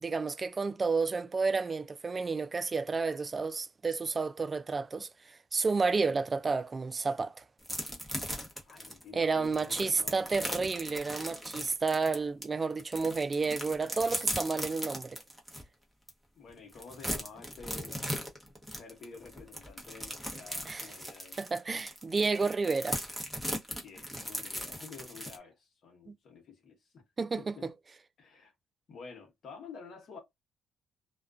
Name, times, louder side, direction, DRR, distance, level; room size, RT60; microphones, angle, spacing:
voice 1, 0.0-7.4 9.1-15.2 20.7-20.9 21.4-23.0 26.1-26.2 27.2-27.7, right 4 dB, 30° right, 0.3 m, -31 dB
Plastic packet crumpling, 7.6-12.4 12.8-15.6 16.1-16.2 16.5-25.4, equal, ahead, 0.9 m, -38 dB
voice 2, 8.6-10.3 16.3-18.0 18.8-21.4 23.8-27.0 27.4-27.7 28.2-28.5 28.9-30.2, left 5 dB, 60° left, 0.9 m, -50 dB
2.3 x 2.2 x 2.4 m
cardioid pair, 90°, 0 cm